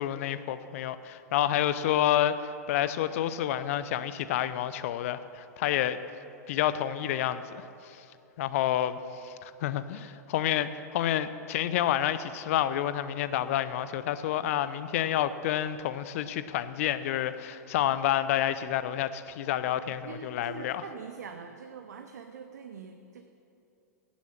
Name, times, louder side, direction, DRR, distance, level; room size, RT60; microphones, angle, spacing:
voice 1, 0.0-2.4 2.7-6.0 6.5-8.0 8.4-20.8, left 11 dB, 55° left, 14 dB, 0.6 m, -29 dB
voice 2, 19.9-23.2, right 6 dB, 70° right, 6 dB, 0.7 m, -44 dB
16.5 x 7.2 x 5.8 m, 2.8 s
figure-of-eight pair, 100°, 9 cm